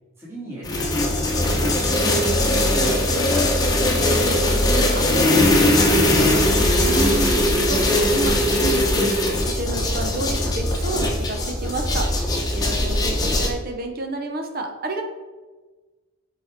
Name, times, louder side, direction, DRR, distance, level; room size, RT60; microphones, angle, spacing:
voice 1, 0.2-4.2, right 1 dB, 10° right, -7 dB, 2.7 m, -38 dB
sound 1, 0.6-13.5, left 1 dB, 20° left, 1.1 m, -20 dB
voice 2, 4.5-15.0, right 2 dB, 45° right, 4 dB, 0.9 m, -30 dB
7.6 x 4.9 x 5.9 m, 1.2 s
head